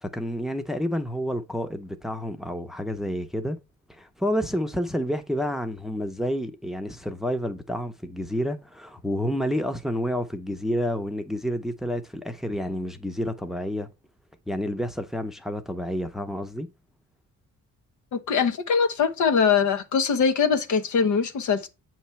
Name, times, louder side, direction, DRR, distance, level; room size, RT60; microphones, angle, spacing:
voice 1, 0.0-3.6 3.9-13.9 14.5-16.7, equal, ahead, 0.6 m, -29 dB
voice 2, 18.1-21.7, left 6 dB, 80° left, 1.0 m, -22 dB
8.1 x 3.1 x 5.6 m
wide cardioid pair, 140°, 29 cm